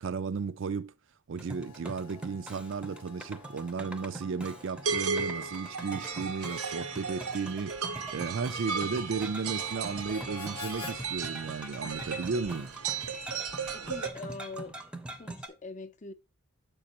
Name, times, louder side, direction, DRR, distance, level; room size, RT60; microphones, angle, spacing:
voice 1, 0.0-0.9 1.3-12.7, right 5 dB, 60° right, 0.4 m, -34 dB
sound 1, 1.4-15.5, right 1 dB, 5° right, 0.6 m, -44 dB
Harmonica, 1.5-11.0, left 5 dB, 80° left, 0.7 m, -50 dB
sound 2, 4.8-14.1, right 5 dB, 90° right, 0.8 m, -35 dB
voice 2, 13.7-14.7 15.2-16.1, left 3 dB, 35° left, 0.5 m, -42 dB
7.4 x 5.2 x 2.9 m
head